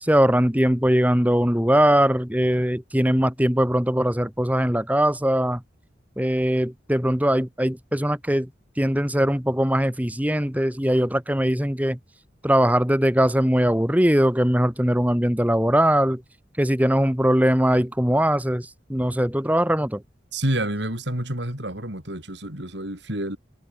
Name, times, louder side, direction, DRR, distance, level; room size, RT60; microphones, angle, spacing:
voice 1, 0.0-5.6 6.2-8.5 8.8-12.0 12.4-16.2 16.6-20.0, equal, 10° right, 2.1 m, -21 dB
voice 2, 20.3-23.4, right 1 dB, 65° right, 6.6 m, -28 dB
head